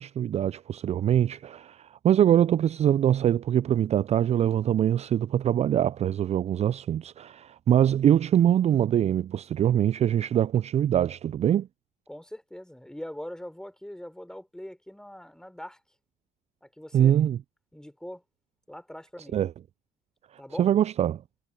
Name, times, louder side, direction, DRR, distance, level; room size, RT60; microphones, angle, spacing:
voice 1, 0.0-11.7 16.9-17.4 19.3-19.5 20.6-21.2, right 10 dB, 40° right, 0.5 m, -23 dB
voice 2, 12.1-15.8 16.6-17.2 17.7-18.2 18.7-19.4 20.4-20.7, left 1 dB, 5° left, 6.2 m, -42 dB
hypercardioid pair, 55°, 17 cm